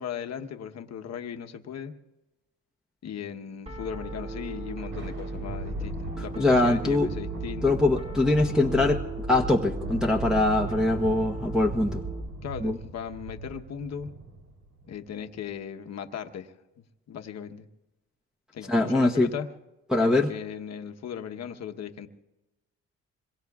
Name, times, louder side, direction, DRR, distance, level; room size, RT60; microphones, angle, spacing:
voice 1, 0.0-1.9 3.0-7.8 12.4-14.1 14.9-17.7 18.5-19.5 20.0-22.1, left 8 dB, 60° left, 6 dB, 1.1 m, -37 dB
Piano, 3.7-12.3, right 2 dB, 20° right, 2.1 m, -37 dB
Thunder, 4.3-15.1, right 2 dB, 80° right, 3.3 m, -39 dB
voice 2, 6.4-7.1 7.6-12.0 12.6-12.8 18.7-19.3 19.9-20.3, left 2 dB, ahead, -2 dB, 1.1 m, -23 dB
26.5 x 22.5 x 2.4 m, 1.0 s
cardioid pair, 90°, 30 cm